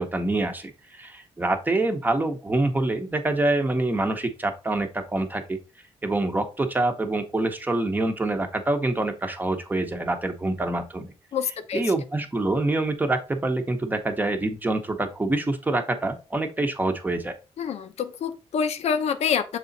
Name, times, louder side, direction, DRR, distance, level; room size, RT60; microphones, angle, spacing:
voice 1, 0.0-5.6 6.0-11.1 11.7-17.3, right 2 dB, 15° right, 6 dB, 0.9 m, -26 dB
voice 2, 11.3-11.8 17.6-19.6, left 7 dB, 85° left, 8 dB, 0.8 m, -26 dB
6.8 x 3.9 x 4.0 m, 0.32 s
wide cardioid pair, 140°, 11 cm